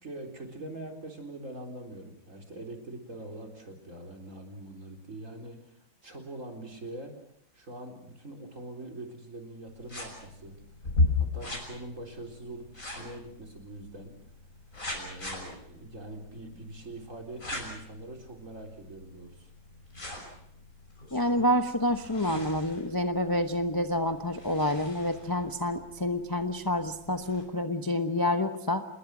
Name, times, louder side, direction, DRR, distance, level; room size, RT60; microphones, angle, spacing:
voice 1, 0.0-5.8 6.0-7.2 7.5-10.6 11.2-14.1 14.9-19.5, right 1 dB, 40° right, 2 dB, 4.3 m, -43 dB
sound 1, 9.7-27.4, left 2 dB, 40° left, 6.7 m, -38 dB
voice 2, 21.1-28.9, left 1 dB, 20° left, 7 dB, 0.7 m, -28 dB
27.5 x 21.0 x 6.2 m, 0.75 s
omnidirectional pair, 2.1 m